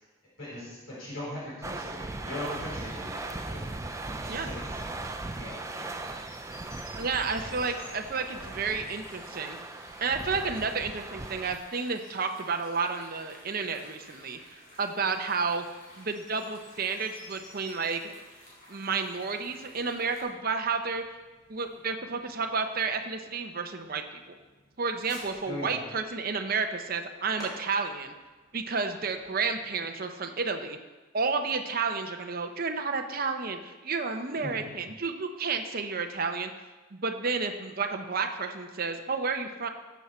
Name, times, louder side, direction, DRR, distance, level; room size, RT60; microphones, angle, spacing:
voice 1, 0.4-4.8 5.3-5.9 25.4-25.8 34.4-34.8, left 1 dB, 65° left, -7 dB, 4.3 m, -40 dB
sound 1, 1.6-11.6, right 2 dB, 15° right, 0.4 m, -39 dB
sound 2, 2.4-20.2, left 1 dB, 45° left, 4.3 m, -52 dB
voice 2, 7.0-9.6 10.0-15.6 16.0-18.1 18.7-21.0 21.5-24.4 24.8-28.1 28.5-30.8 31.1-36.5 36.9-39.7, right 4 dB, 45° right, 5 dB, 0.7 m, -31 dB
Fireworks, 19.2-29.8, equal, 20° left, 3.7 m, -54 dB
14.0 x 7.2 x 4.4 m, 1.2 s
head